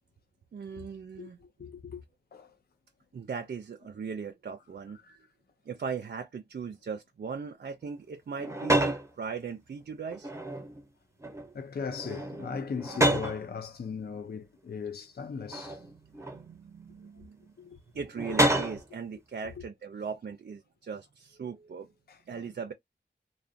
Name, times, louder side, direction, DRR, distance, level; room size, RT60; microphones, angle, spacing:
voice 1, 0.5-1.4 3.1-5.0 5.7-10.3 16.3-17.5 17.9-21.9 22.3-22.7, right 6 dB, 60° right, 0.4 m, -39 dB
voice 2, 1.2-2.0 2.3-2.6 5.0-5.2 11.5-15.8 17.6-17.8 18.3-18.4 19.4-19.6 22.1-22.4, left 6 dB, 60° left, 0.4 m, -38 dB
sound 1, 8.4-9.1 10.1-10.8 11.2-11.5 11.9-13.4 14.2-14.3 15.5-16.4 18.1-18.9, right 1 dB, 15° right, 0.8 m, -28 dB
2.4 x 2.1 x 2.5 m
wide cardioid pair, 60°, 18 cm